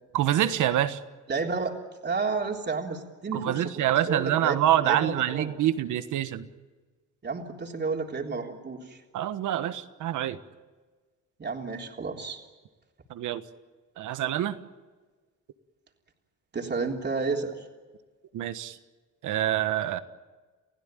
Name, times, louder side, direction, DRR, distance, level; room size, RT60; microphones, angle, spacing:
voice 1, 0.1-1.0 3.3-6.5 9.1-10.4 13.1-13.4 14.0-14.6 18.3-18.8 19.2-20.0, right 12 dB, 80° right, 11 dB, 1.4 m, -26 dB
voice 2, 1.3-3.7 4.1-5.5 7.2-9.0 11.4-12.4 16.5-17.7, right 4 dB, 35° right, 1 dB, 3.5 m, -31 dB
30.0 x 16.0 x 9.1 m, 1.4 s
cardioid pair, 90°, 30 cm